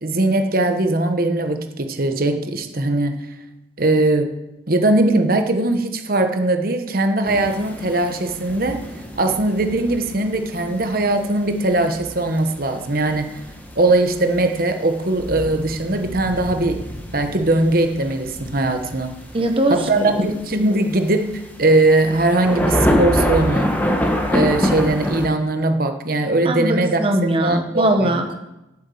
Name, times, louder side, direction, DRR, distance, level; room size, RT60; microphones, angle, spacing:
voice 1, 0.0-3.2 3.8-4.3 4.7-8.9 9.2-13.3 13.8-16.8 17.1-19.2 19.7-23.7 24.3-27.0 27.4-28.2, right 2 dB, 55° right, 6 dB, 1.2 m, -20 dB
sound 1, 7.2-25.3, equal, 10° left, 1.5 m, -26 dB
voice 2, 19.3-20.3 26.4-28.3, right 1 dB, 30° right, 5 dB, 1.0 m, -21 dB
8.7 x 8.0 x 7.9 m, 0.94 s
head